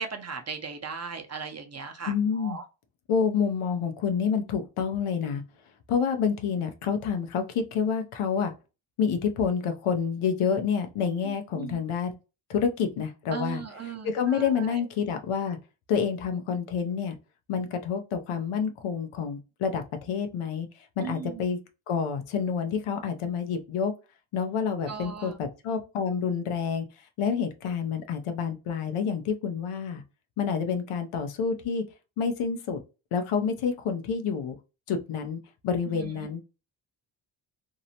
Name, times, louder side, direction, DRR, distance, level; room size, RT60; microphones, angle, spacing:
voice 1, 0.0-2.6 11.2-11.8 13.3-14.8 21.0-21.4 24.9-25.3 35.9-36.3, right 5 dB, 35° right, 0.6 m, -38 dB
voice 2, 2.1-2.6 3.1-5.4 5.9-8.5 9.0-12.1 12.5-13.6 14.0-15.6 15.9-17.2 17.5-21.6 21.9-23.9 24.3-26.9 27.2-30.0 30.4-31.8 32.2-32.8 33.1-34.6 34.9-36.4, left 6 dB, 85° left, 0.6 m, -28 dB
2.7 x 2.0 x 2.7 m
cardioid pair, 55°, 49 cm